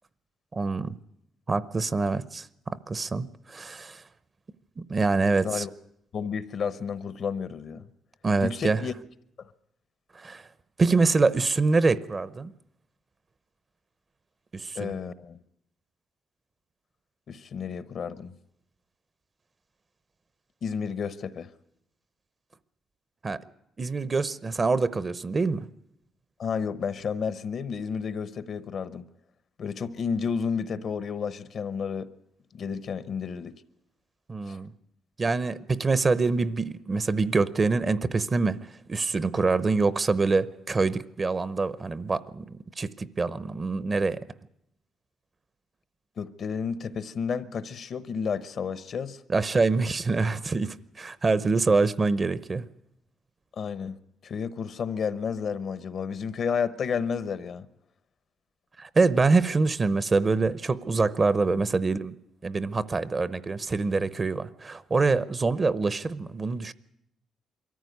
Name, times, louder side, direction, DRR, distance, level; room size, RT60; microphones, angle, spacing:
voice 1, 0.5-1.0 1.5-4.0 4.8-5.6 8.2-8.8 10.1-10.4 10.8-12.5 14.5-14.9 23.2-23.4 23.8-25.7 34.3-34.7 35.2-44.2 49.3-52.6 58.8-62.2 62.4-66.7, right 3 dB, 30° right, 0.8 m, -25 dB
voice 2, 5.4-5.7 6.1-7.9 8.4-8.9 9.4-9.5 14.7-15.4 17.3-18.3 20.6-21.5 26.4-29.1 29.6-32.1 32.5-33.5 34.5-34.6 46.2-49.2 53.6-54.0 54.2-57.7, left 6 dB, 60° left, 1.0 m, -31 dB
22.5 x 14.0 x 9.5 m
cardioid pair, 90°, 0 cm